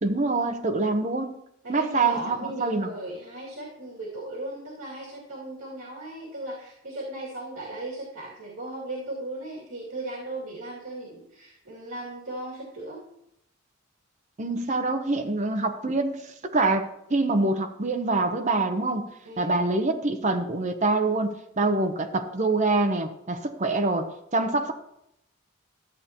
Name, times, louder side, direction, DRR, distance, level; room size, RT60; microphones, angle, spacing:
voice 1, 0.0-1.3 1.7-2.9 14.4-19.0 19.4-24.7, right 3 dB, 35° right, 5 dB, 0.8 m, -25 dB
voice 2, 1.6-13.0 19.2-19.6 24.4-24.6, right 1 dB, 70° right, -5 dB, 2.4 m, -37 dB
13.5 x 8.2 x 2.9 m, 0.77 s
head